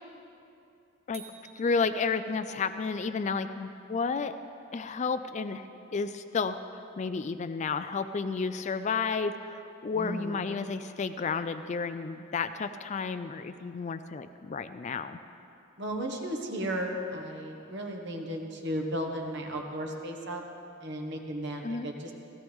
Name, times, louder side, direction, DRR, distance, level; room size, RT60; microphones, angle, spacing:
sound 1, 1.1-2.7, right 6 dB, 30° right, 1.1 m, -52 dB
voice 1, 1.6-4.3 4.7-5.7 5.9-15.2 21.6-21.9, left 5 dB, 35° left, 10 dB, 0.3 m, -32 dB
voice 2, 9.9-10.4 15.8-20.4 20.8-22.1, equal, 55° right, 2 dB, 1.5 m, -35 dB
16.5 x 16.0 x 3.6 m, 2.7 s
head